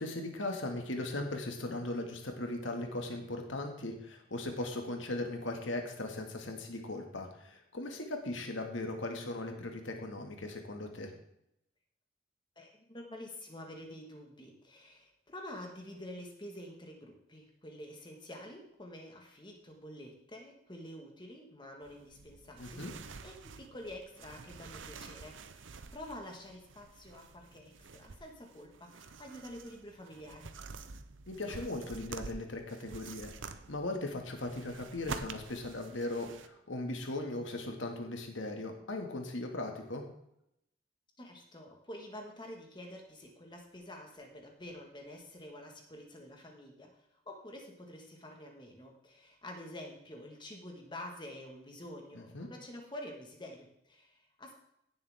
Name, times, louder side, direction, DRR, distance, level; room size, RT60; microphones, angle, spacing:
voice 1, 0.0-11.1 22.6-22.9 31.3-33.3 33.7-40.0 52.1-52.5, left 2 dB, 85° left, 3 dB, 2.0 m, -38 dB
voice 2, 12.5-30.5 41.2-54.5, left 1 dB, 25° left, 2 dB, 1.6 m, -48 dB
sound 1, 21.8-36.5, right 4 dB, 80° right, 0.7 m, -48 dB
16.5 x 7.4 x 3.6 m, 0.78 s
head